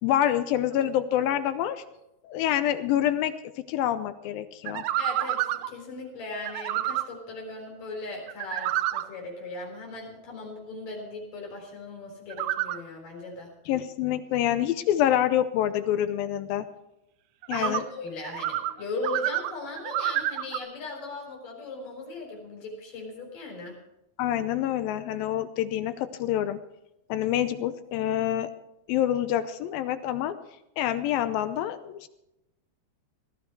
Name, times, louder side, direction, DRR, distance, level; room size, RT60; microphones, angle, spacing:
voice 1, 0.0-1.8 2.2-4.8 13.7-16.7 17.5-17.8 24.2-26.6 27.1-28.5 28.9-30.4 30.8-32.1, left 11 dB, 80° left, 11 dB, 2.3 m, -26 dB
sound 1, 4.7-5.7 6.5-7.1 8.3-9.0 12.3-12.8 17.4-17.8 18.2-18.7 19.0-20.6, right 13 dB, 80° right, 2.1 m, -28 dB
voice 2, 5.0-13.5 17.5-23.8, left 2 dB, 55° left, 0 dB, 5.5 m, -38 dB
17.5 x 13.0 x 4.7 m, 0.89 s
omnidirectional pair, 4.5 m